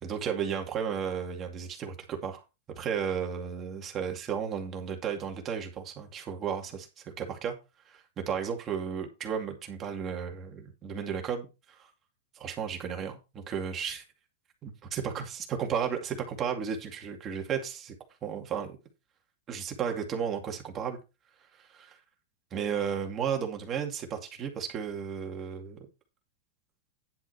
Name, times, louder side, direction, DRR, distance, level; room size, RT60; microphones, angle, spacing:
voice 1, 0.0-2.4 2.8-7.6 7.9-11.9 12.3-14.0 14.6-17.9 18.2-18.8 19.5-21.0 21.6-22.0 22.5-25.8, right 7 dB, 20° right, 2.3 m, -34 dB
10.5 x 6.2 x 4.5 m
supercardioid pair, 170°, 0 cm